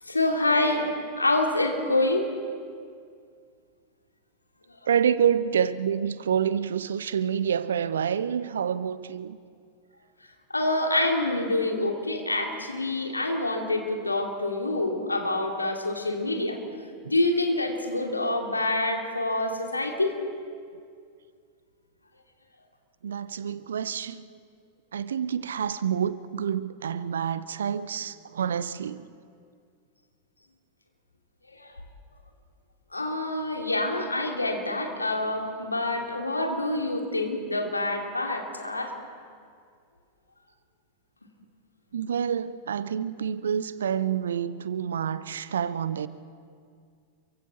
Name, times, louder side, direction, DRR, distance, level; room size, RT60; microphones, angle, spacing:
voice 1, 0.0-2.2 10.5-16.6 17.0-20.2 31.5-31.7 32.9-38.9, left 2 dB, 80° left, 2.6 m, -26 dB
voice 2, 4.9-9.4 23.0-24.3 24.9-29.1 41.9-46.1, right 8 dB, 65° right, 0.7 m, -28 dB
28.0 x 24.0 x 4.2 m
figure-of-eight pair, 90°, 0 cm